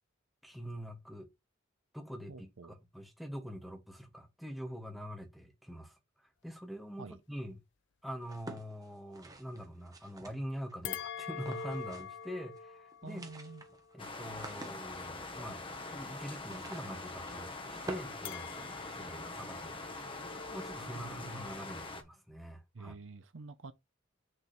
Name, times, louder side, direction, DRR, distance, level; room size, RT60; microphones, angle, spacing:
voice 1, 0.4-1.3 1.9-2.3 2.9-6.0 6.4-7.6 8.0-13.2 13.9-15.6 15.9-20.1 20.5-22.9, equal, ahead, 1.5 m, -44 dB
voice 2, 2.3-2.7 7.0-7.2 13.0-13.6 20.9-21.6 22.7-23.7, right 3 dB, 70° right, 0.7 m, -48 dB
sound 1, 8.2-10.7 11.3-12.3 12.5-12.6 12.9-19.1, right 2 dB, 20° right, 1.2 m, -49 dB
sound 2, 10.8-15.3 18.2-20.8, left 7 dB, 65° left, 0.6 m, -45 dB
sound 3, 14.0-22.0, left 3 dB, 25° left, 1.3 m, -43 dB
6.6 x 3.5 x 6.0 m
head